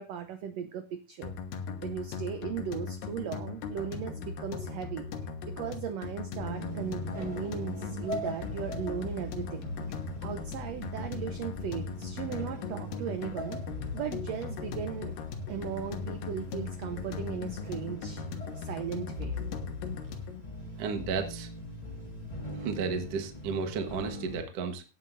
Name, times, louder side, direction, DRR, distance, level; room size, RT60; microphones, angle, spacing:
voice 1, 0.0-1.3 1.8-5.1 5.6-9.6 10.2-13.6 13.9-15.1 15.5-18.2 18.5-19.3, right 8 dB, 85° right, 10 dB, 1.4 m, -37 dB
sound 1, 1.2-20.4, left 5 dB, 85° left, 2.9 m, -39 dB
sound 2, 6.4-24.4, equal, 10° left, 3.0 m, -41 dB
voice 2, 20.8-21.5 22.6-24.8, right 5 dB, 55° right, 5 dB, 2.0 m, -33 dB
18.0 x 9.4 x 2.6 m, 0.28 s
omnidirectional pair, 3.9 m